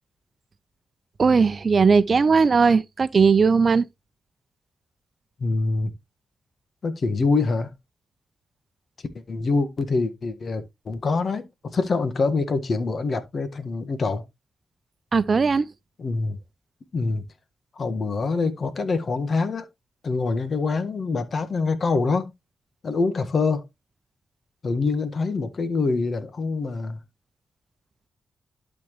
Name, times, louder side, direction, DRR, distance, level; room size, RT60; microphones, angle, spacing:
voice 1, 1.2-3.9 15.1-15.7, right 5 dB, 50° right, 0.7 m, -18 dB
voice 2, 5.4-5.9 6.8-7.7 9.3-14.2 16.0-16.4 16.9-17.2 17.7-19.6 20.0-22.3 22.8-23.6 24.6-27.0, left 3 dB, 55° left, 1.6 m, -25 dB
12.0 x 4.5 x 3.1 m
supercardioid pair, 50°, 0 cm